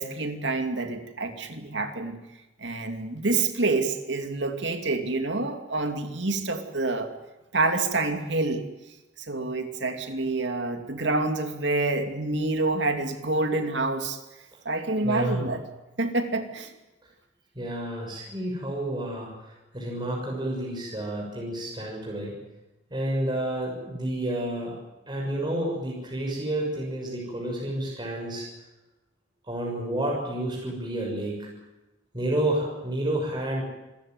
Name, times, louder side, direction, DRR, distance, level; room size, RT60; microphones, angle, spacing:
voice 1, 0.0-2.2 2.6-7.1 7.5-8.7 9.2-14.2 14.6-15.6 16.0-16.7, right 3 dB, 70° right, 6 dB, 2.6 m, -27 dB
voice 2, 15.0-15.5 17.5-22.3 22.9-24.7 25.1-28.4 29.5-31.5 32.1-33.6, right 1 dB, 25° right, -2 dB, 6.3 m, -30 dB
26.5 x 15.5 x 9.5 m, 1.0 s
head